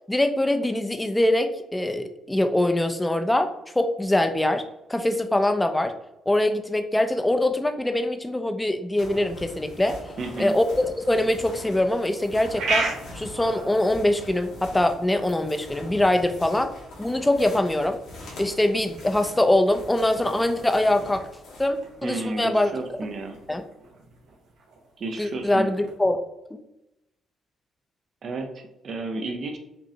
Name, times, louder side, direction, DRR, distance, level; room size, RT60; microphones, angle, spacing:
voice 1, 0.1-4.6 4.9-5.9 6.3-10.0 10.4-12.9 13.1-16.7 17.0-18.0 18.4-21.2 21.6-22.7 23.5-23.6 25.2-26.2, left 1 dB, 10° left, 7 dB, 0.4 m, -23 dB
sound 1, 9.0-23.6, left 2 dB, 85° left, 1.3 m, -43 dB
voice 2, 10.2-10.6 22.0-23.4 25.0-25.7 28.2-29.6, right 2 dB, 55° right, 6 dB, 0.6 m, -32 dB
sound 2, 11.9-26.0, right 3 dB, 85° right, 0.9 m, -38 dB
5.2 x 2.0 x 2.8 m, 0.92 s
cardioid pair, 90°, 0 cm